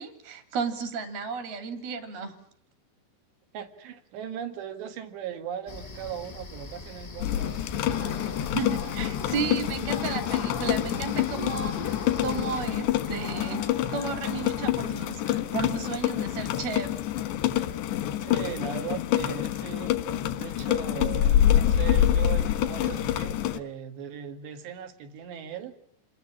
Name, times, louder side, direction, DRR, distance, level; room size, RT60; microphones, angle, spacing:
voice 1, 0.0-2.4 8.5-16.9, right 5 dB, 65° right, 9 dB, 4.5 m, -33 dB
voice 2, 3.5-7.6 18.2-19.9 20.3-25.8, right 8 dB, 90° right, 7 dB, 4.3 m, -38 dB
sound 1, 5.7-12.6, left 3 dB, 35° left, 0.6 m, -42 dB
sound 2, 7.2-23.6, left 11 dB, 90° left, 3.5 m, -27 dB
sound 3, 7.9-14.7, left 6 dB, 60° left, 1.2 m, -38 dB
29.0 x 20.5 x 8.6 m, 0.63 s
omnidirectional pair, 4.8 m